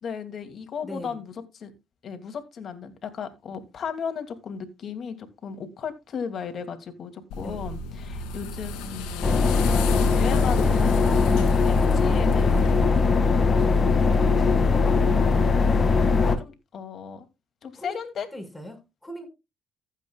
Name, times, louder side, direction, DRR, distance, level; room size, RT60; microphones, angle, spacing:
voice 1, 0.0-1.7 2.0-15.8 16.1-17.3 17.6-18.3, left 6 dB, 55° left, 2.5 m, -36 dB
voice 2, 0.8-1.2 7.4-7.7 11.2-11.5 12.9-13.2 17.7-18.0 18.3-19.3, left 1 dB, 5° left, 5.8 m, -38 dB
sound 1, 7.3-12.9, left 2 dB, 85° left, 2.3 m, -34 dB
sound 2, 9.2-16.4, left 4 dB, 40° left, 2.0 m, -20 dB
15.5 x 8.3 x 2.4 m
supercardioid pair, 65°, 0 cm